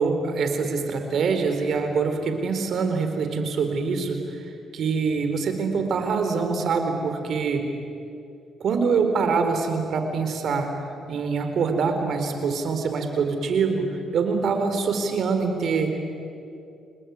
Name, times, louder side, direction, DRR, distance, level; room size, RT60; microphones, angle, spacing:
voice 1, 0.0-4.5 4.7-7.6 8.6-10.7 11.1-13.8 14.1-16.0, right 5 dB, 65° right, 6 dB, 4.2 m, -24 dB
29.0 x 20.0 x 9.6 m, 2.6 s
cardioid pair, 90°, 0 cm